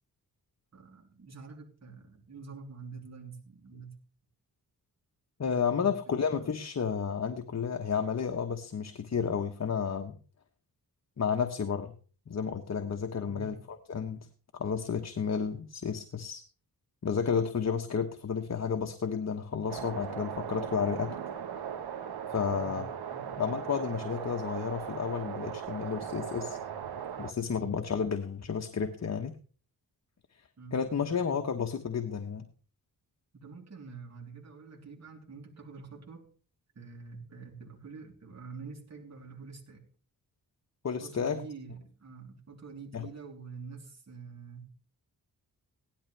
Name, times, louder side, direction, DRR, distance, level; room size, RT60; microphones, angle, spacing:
voice 1, 0.7-4.0 5.7-6.5 13.3-13.5 22.5-22.8 23.1-23.4 27.4-27.7 30.6-31.4 33.3-36.3 36.7-39.8 41.0-44.7, right 5 dB, 45° right, 0 dB, 3.4 m, -47 dB
voice 2, 5.4-10.2 11.2-11.9 12.3-13.6 13.9-14.3 14.5-16.4 17.0-21.2 22.3-22.9 23.4-26.6 27.2-29.4 30.7-32.5 40.8-41.4 42.9-43.1, left 6 dB, 45° left, 5 dB, 1.1 m, -31 dB
sound 1, 19.7-27.3, right 8 dB, 85° right, 1.4 m, -38 dB
16.5 x 11.5 x 3.4 m, 0.40 s
wide cardioid pair, 110°, 37 cm